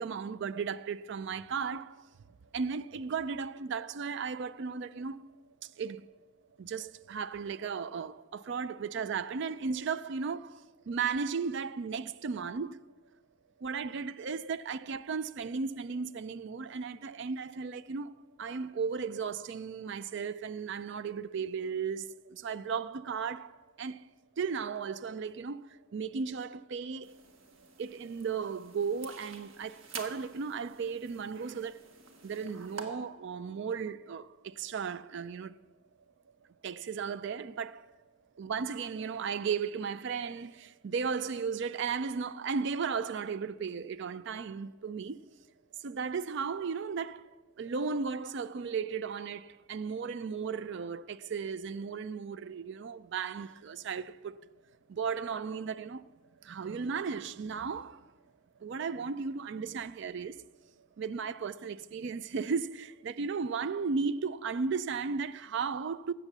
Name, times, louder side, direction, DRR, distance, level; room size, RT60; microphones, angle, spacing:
voice 1, 0.0-2.1 2.5-5.3 5.6-6.1 6.6-12.8 13.6-18.1 18.4-24.1 24.4-27.2 27.8-31.9 32.2-35.5 36.6-37.9 38.4-45.2 45.8-54.3 54.9-56.0 56.4-58.1 58.6-60.4 61.0-66.1, right 5 dB, 55° right, 0.4 m, -35 dB
sound 1, 27.0-32.8, right 4 dB, 70° right, 1.4 m, -49 dB
15.5 x 7.2 x 6.7 m
head